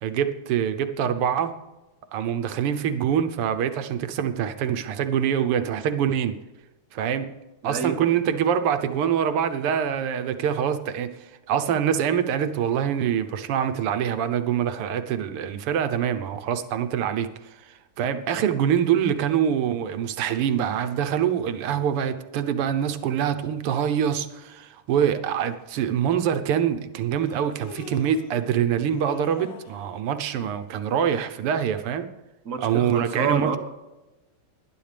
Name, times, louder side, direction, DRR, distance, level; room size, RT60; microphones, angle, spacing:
voice 1, 0.0-1.5 2.1-6.4 6.9-7.3 7.6-32.1 32.6-33.6, right 9 dB, 85° right, 9 dB, 1.9 m, -25 dB
voice 2, 7.6-8.0 32.4-33.6, right 5 dB, 45° right, 5 dB, 1.3 m, -27 dB
Human voice, 25.8-25.9 27.2-28.4 28.9-29.9, left 3 dB, 85° left, 2.6 m, -41 dB
19.0 x 11.0 x 3.4 m, 1.1 s
omnidirectional pair, 2.4 m